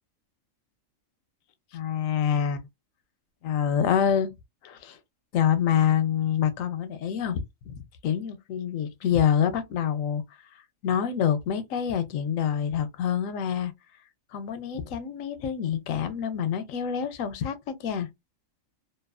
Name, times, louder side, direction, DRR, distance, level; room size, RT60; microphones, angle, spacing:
voice 1, 1.7-2.7 3.4-4.3 4.6-5.0 5.3-10.2 10.8-13.7 14.3-18.1, left 8 dB, 85° left, 1.0 m, -26 dB
2.6 x 2.4 x 2.2 m
omnidirectional pair, 1.4 m